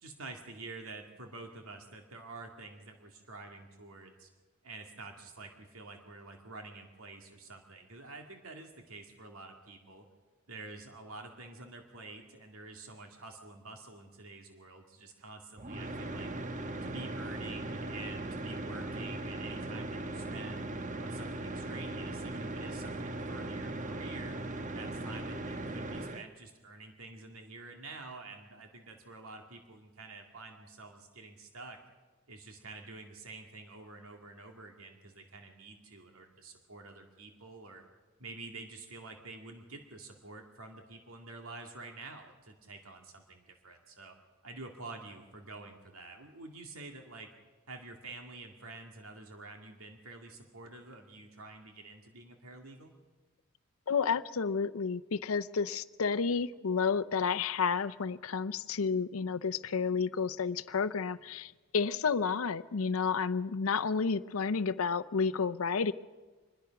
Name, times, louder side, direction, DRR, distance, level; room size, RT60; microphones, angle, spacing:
voice 1, 0.0-4.3 4.6-10.1 10.5-16.3 16.8-20.7 21.0-24.4 24.7-31.8 32.3-37.8 38.2-44.2 44.4-47.3 47.7-52.9, right 3 dB, 85° right, 3 dB, 2.2 m, -48 dB
sound 1, 15.6-26.2, right 2 dB, 35° right, 1.1 m, -38 dB
voice 2, 53.9-65.9, left 5 dB, 85° left, 13 dB, 0.6 m, -31 dB
25.5 x 20.5 x 5.9 m, 1.3 s
head